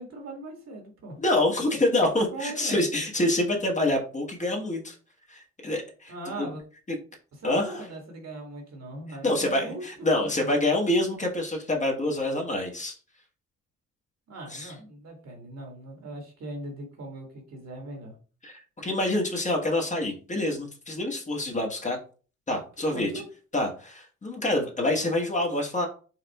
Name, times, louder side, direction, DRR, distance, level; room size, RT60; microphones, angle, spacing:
voice 1, 0.0-1.2 2.3-2.8 6.1-6.6 7.4-9.8 10.2-10.5 14.3-18.1 22.8-23.3, right 2 dB, 60° right, 1 dB, 1.7 m, -39 dB
voice 2, 1.2-4.9 5.3-6.5 6.9-7.0 7.4-7.9 9.2-13.0 14.5-14.7 18.4-22.0 22.5-23.1 23.5-25.9, left 1 dB, 25° left, 1 dB, 1.2 m, -26 dB
4.9 x 2.4 x 3.4 m, 0.38 s
cardioid pair, 90°, 30 cm